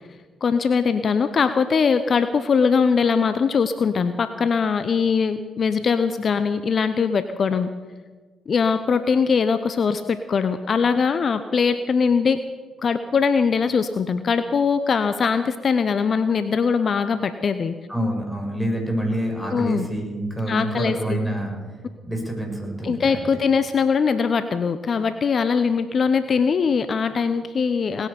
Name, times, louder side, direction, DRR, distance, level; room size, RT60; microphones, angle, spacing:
voice 1, 0.4-7.7 8.5-12.4 12.8-17.7 19.5-19.9 20.5-21.2 22.8-28.1, left 5 dB, 50° left, 11 dB, 0.8 m, -21 dB
voice 2, 17.9-21.5 22.1-23.2, right 1 dB, ahead, 0 dB, 6.5 m, -26 dB
19.0 x 9.9 x 7.1 m, 1.4 s
hypercardioid pair, 45°, 0 cm